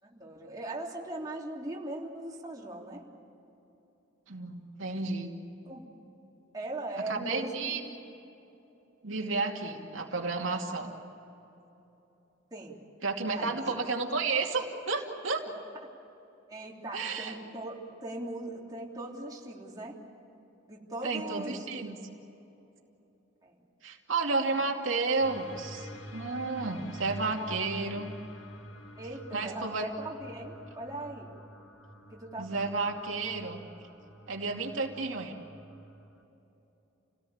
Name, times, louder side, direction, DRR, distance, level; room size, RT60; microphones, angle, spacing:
voice 1, 0.0-3.0 5.6-5.8 6.5-7.9 12.5-12.8 13.2-13.7 16.5-20.0 20.7-21.7 23.4-23.6 24.5-24.6 29.0-31.3 32.1-32.7, right 2 dB, 20° right, -3 dB, 3.4 m, -39 dB
voice 2, 4.3-5.3 7.1-7.8 9.0-10.9 13.0-15.4 16.9-17.4 21.0-22.0 23.8-28.1 29.3-29.8 32.4-33.6 34.3-35.3, right 3 dB, 80° right, 0 dB, 2.6 m, -32 dB
sound 1, 25.2-36.2, equal, 70° left, 2.3 m, -47 dB
29.0 x 18.0 x 8.8 m, 3.0 s
head